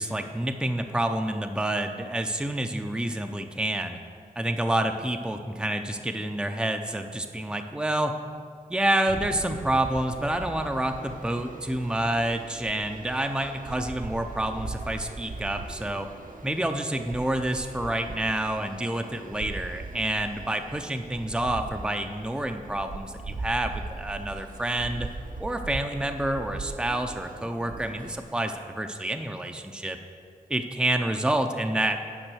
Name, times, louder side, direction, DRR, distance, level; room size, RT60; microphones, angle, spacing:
voice 1, 0.0-4.0 4.4-8.2 8.7-16.1 16.4-25.1 25.4-30.0 30.5-32.0, right 1 dB, 5° right, 5 dB, 0.5 m, -28 dB
sound 1, 9.1-28.3, right 3 dB, 60° right, 0.7 m, -40 dB
9.0 x 5.5 x 6.3 m, 2.3 s
wide cardioid pair, 65°, 15 cm